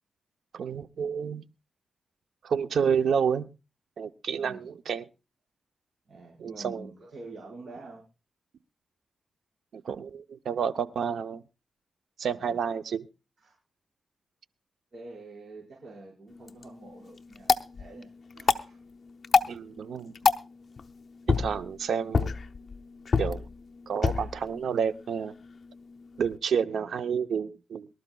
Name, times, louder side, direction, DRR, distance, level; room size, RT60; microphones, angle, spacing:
voice 1, 0.5-1.4 2.4-3.5 4.0-5.0 6.4-6.9 9.7-11.4 12.2-13.1 19.5-20.1 21.3-22.3 23.2-23.5 23.9-25.3 26.2-27.9, right 7 dB, 85° right, 12 dB, 0.7 m, -29 dB
voice 2, 4.3-4.7 6.1-8.0 12.3-12.5 13.4-13.6 14.9-18.8 26.6-26.9, right 2 dB, 60° right, -2 dB, 5.0 m, -47 dB
sound 1, 16.3-26.4, left 5 dB, 45° left, 0.7 m, -30 dB
23.5 x 12.5 x 2.3 m, 0.29 s
wide cardioid pair, 100°, 0 cm